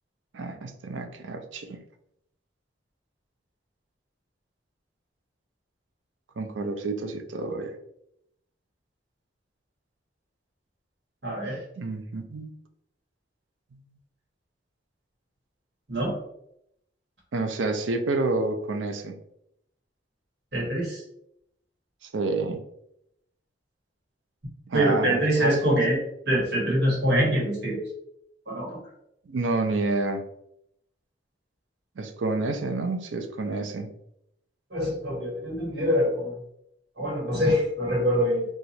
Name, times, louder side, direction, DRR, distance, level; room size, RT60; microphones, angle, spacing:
voice 1, 0.3-1.8 6.4-7.8 11.8-12.5 17.3-19.2 22.0-22.6 24.7-25.8 29.3-30.2 32.0-33.9, right 3 dB, 85° right, 6 dB, 0.5 m, -29 dB
voice 2, 11.2-11.6 15.9-16.1 20.5-21.0 24.7-26.0 26.3-27.8 28.5-28.7 34.7-36.4 37.0-38.5, equal, 60° right, -3 dB, 1.3 m, -24 dB
2.9 x 2.4 x 4.1 m, 0.77 s
head